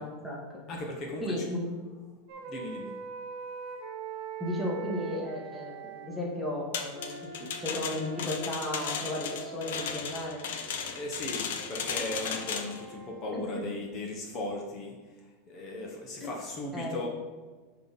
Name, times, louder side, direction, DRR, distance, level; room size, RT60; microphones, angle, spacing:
voice 1, 0.0-0.6 1.2-1.7 4.4-7.1 7.4-10.4 13.3-13.7 16.7-17.1, left 1 dB, ahead, -4 dB, 1.2 m, -34 dB
voice 2, 0.7-1.5 2.5-2.9 10.8-17.1, left 2 dB, 30° left, 0 dB, 1.0 m, -37 dB
sound 1, 2.3-6.1 6.9-13.4, right 6 dB, 50° right, 1.2 m, -43 dB
sound 2, 6.7-12.8, left 7 dB, 70° left, 0.9 m, -35 dB
10.0 x 3.7 x 4.1 m, 1.4 s
supercardioid pair, 165°, 0 cm